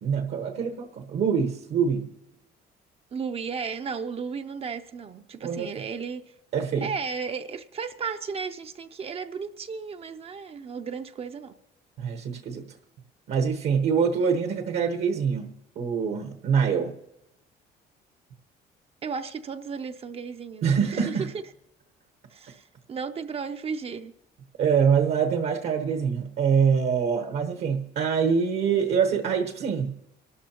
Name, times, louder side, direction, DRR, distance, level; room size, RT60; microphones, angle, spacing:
voice 1, 0.0-2.1 5.4-5.7 6.5-6.9 12.0-12.7 13.3-16.9 20.6-21.3 24.6-30.0, right 6 dB, 70° right, 1.1 m, -25 dB
voice 2, 3.1-6.3 6.8-11.5 19.0-21.3 22.3-24.1, right 5 dB, 35° right, 0.5 m, -34 dB
25.0 x 12.5 x 2.9 m
cardioid pair, 110°, 17 cm